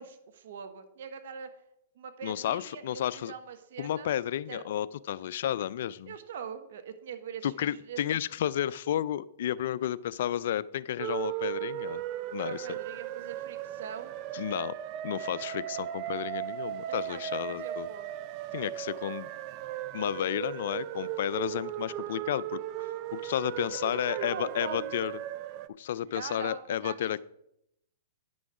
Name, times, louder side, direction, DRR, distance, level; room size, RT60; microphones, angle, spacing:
voice 1, 0.0-1.5 1.9-4.1 4.5-4.7 6.1-8.0 12.4-14.1 16.9-18.1 23.6-24.9 26.0-27.2, right 7 dB, 65° right, 9 dB, 1.1 m, -42 dB
voice 2, 2.2-3.3 3.8-6.1 7.4-12.0 12.3-12.7 14.3-14.7 15.0-17.9 18.5-19.3 19.9-25.1 25.8-27.2, left 11 dB, 65° left, 19 dB, 0.4 m, -32 dB
sound 1, 11.0-25.7, right 12 dB, 40° right, 0.5 m, -37 dB
9.9 x 6.1 x 4.8 m, 0.79 s
hypercardioid pair, 125°, 0 cm